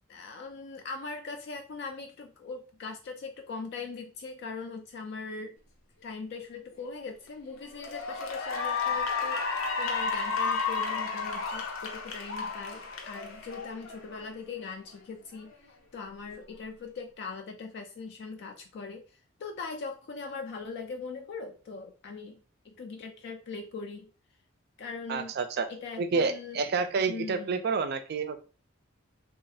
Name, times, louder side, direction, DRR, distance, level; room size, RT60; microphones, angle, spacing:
voice 1, 0.1-5.6 6.0-22.4 22.6-24.1 24.8-25.3 25.7-26.6 27.1-27.6, left 4 dB, 55° left, 4 dB, 0.3 m, -41 dB
Cheering / Applause, 7.0-7.3 7.7-14.3, left 4 dB, 80° left, 0.7 m, -32 dB
voice 2, 25.1-25.7 26.0-28.4, right 4 dB, 50° right, 10 dB, 0.4 m, -29 dB
3.1 x 2.4 x 2.7 m, 0.36 s
head